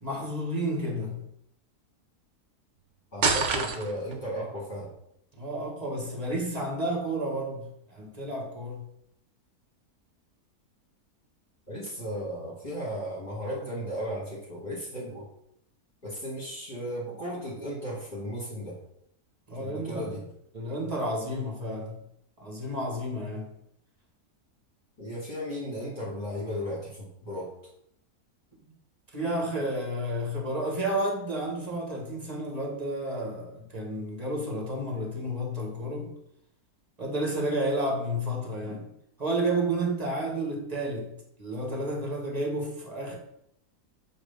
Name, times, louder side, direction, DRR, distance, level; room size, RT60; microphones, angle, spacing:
voice 1, 0.0-1.2 5.3-8.8 19.5-20.1 20.5-22.0 22.4-23.5 29.1-36.1 37.0-38.9 39.2-41.1 41.4-43.2, right 1 dB, 30° right, 1.2 m, -31 dB
voice 2, 3.1-4.9 11.7-15.3 16.0-18.8 19.6-20.2 25.0-27.5, equal, 30° left, 1.5 m, -35 dB
sound 1, 3.2-4.2, right 5 dB, 60° right, 0.9 m, -26 dB
7.3 x 2.7 x 5.0 m
omnidirectional pair, 1.6 m